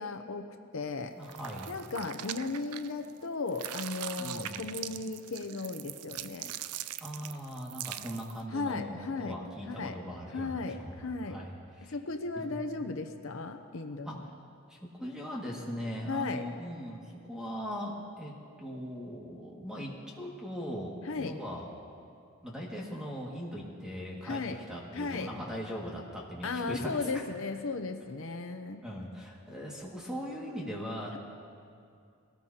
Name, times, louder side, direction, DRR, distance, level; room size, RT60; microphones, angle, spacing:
voice 1, 0.0-1.2 1.7-6.5 8.5-9.4 9.7-10.0 10.3-11.4 11.9-14.3 16.1-16.5 21.0-21.4 24.2-24.6 24.9-25.3 26.4-28.8, left 3 dB, 65° left, 6 dB, 0.7 m, -36 dB
voice 2, 1.2-1.7 4.2-4.6 7.0-11.0 11.2-11.9 12.3-12.6 12.9-13.0 14.0-14.3 14.7-17.0 17.3-19.9 20.2-21.7 22.4-27.1 28.8-31.2, equal, 5° right, -4 dB, 2.0 m, -40 dB
sound 1, 1.2-3.2 3.5-8.4, right 12 dB, 90° right, 0.4 m, -42 dB
22.0 x 18.5 x 2.9 m, 2.4 s
head